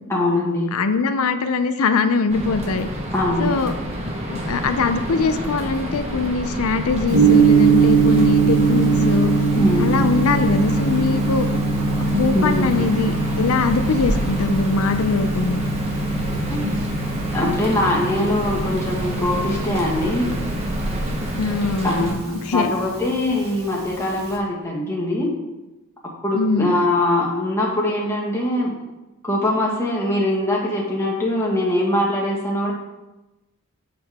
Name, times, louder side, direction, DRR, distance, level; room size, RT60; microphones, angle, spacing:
voice 1, 0.1-0.7 3.1-3.5 9.6-9.9 12.3-12.7 16.5-16.6 17.3-20.2 21.8-25.3 26.2-28.7 29.2-32.7, left 1 dB, 10° left, -5 dB, 1.7 m, -22 dB
voice 2, 0.7-2.9 3.4-3.7 4.3-9.3 9.8-11.5 12.0-15.6 21.4-22.1 22.5-22.8 26.3-26.7, left 4 dB, 70° left, 9 dB, 0.5 m, -22 dB
sound 1, 2.3-22.1, equal, 30° right, 1.2 m, -28 dB
Gong, 7.1-24.4, right 4 dB, 85° right, 1.4 m, -22 dB
7.2 x 6.7 x 3.6 m, 1.0 s
head